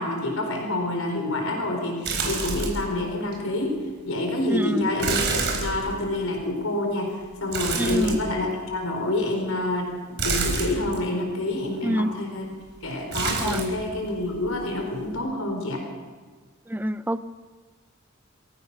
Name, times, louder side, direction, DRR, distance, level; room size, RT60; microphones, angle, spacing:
voice 1, 0.0-3.8 4.0-12.5 12.8-15.9, left 2 dB, 85° left, 2 dB, 4.2 m, -27 dB
sound 1, 2.0-2.9 3.3-3.4 5.0-6.3 7.5-8.6 10.2-11.0 13.1-13.8 14.1-14.7 15.0-15.2, right 4 dB, 55° right, 5.1 m, -28 dB
voice 2, 4.5-4.9 7.7-8.2 11.8-12.1 13.4-13.6 16.7-17.2, equal, 10° right, 12 dB, 0.6 m, -26 dB
27.0 x 16.0 x 6.0 m, 1.5 s
head